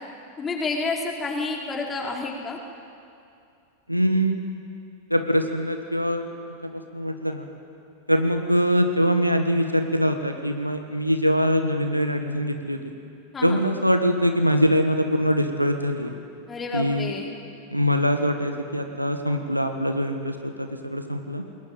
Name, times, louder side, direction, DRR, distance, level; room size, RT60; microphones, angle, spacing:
voice 1, 0.4-2.6 13.3-13.7 16.5-17.3, left 3 dB, 20° left, -1 dB, 4.1 m, -29 dB
voice 2, 3.9-4.4 5.1-6.2 6.6-7.5 8.1-12.8 13.4-16.1 16.7-17.1 17.7-21.4, equal, 90° right, 6 dB, 1.6 m, -23 dB
22.0 x 20.0 x 9.3 m, 2.5 s
figure-of-eight pair, 90°, 0 cm